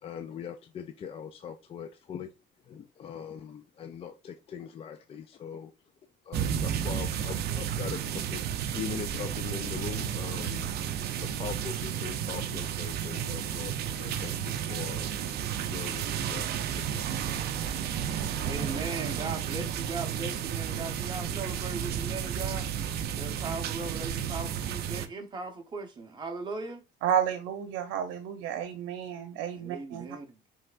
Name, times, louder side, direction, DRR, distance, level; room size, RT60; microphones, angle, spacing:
voice 1, 0.0-2.3 2.6-5.7 6.2-10.7 11.0-15.2 15.7-17.4, left 7 dB, 30° left, 0.3 m, -41 dB
sound 1, 6.3-25.1, right 9 dB, 55° right, 0.5 m, -32 dB
voice 2, 18.4-22.7 23.2-26.8 29.5-30.4, right 3 dB, 20° right, 1.0 m, -38 dB
voice 3, 27.0-30.1, right 9 dB, 85° right, 0.7 m, -31 dB
5.4 x 3.4 x 2.5 m
cardioid pair, 145°, 20 cm